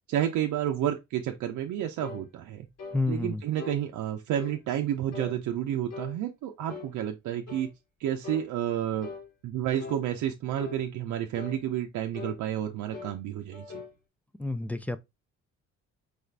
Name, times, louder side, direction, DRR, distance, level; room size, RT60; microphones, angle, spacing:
voice 1, 0.1-2.7 3.1-7.7 8.0-9.1 9.4-13.6, right 11 dB, 80° right, 0.6 m, -30 dB
sound 1, 2.0-2.3 2.8-3.0 3.6-3.8 4.4-4.6 5.1-5.4 5.9-6.2 6.7-6.9 7.5-7.7 8.2-8.5 9.0-9.3 9.8-10.0 10.6-10.8 11.3-11.6 12.1-12.4 12.9-13.2 13.5-14.0, left 5 dB, 60° left, 1.4 m, -41 dB
voice 2, 2.9-3.4 14.4-15.0, left 2 dB, 5° left, 0.3 m, -29 dB
4.9 x 2.4 x 3.2 m
cardioid pair, 90°, 30 cm